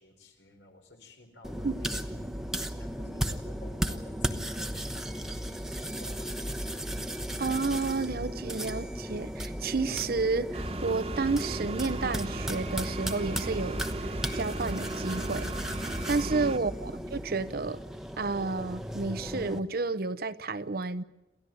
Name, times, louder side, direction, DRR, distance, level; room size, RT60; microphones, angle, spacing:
voice 1, 0.0-2.4 2.8-5.4 5.8-6.7 16.1-16.6, left 2 dB, 80° left, 4.3 m, -52 dB
sound 1, 1.4-19.6, equal, 5° right, 1.0 m, -35 dB
voice 2, 7.4-15.5 16.1-17.8 18.2-21.0, right 3 dB, 55° right, 0.8 m, -31 dB
sound 2, 10.5-16.6, right 2 dB, 35° right, 1.4 m, -36 dB
28.0 x 14.5 x 9.3 m
head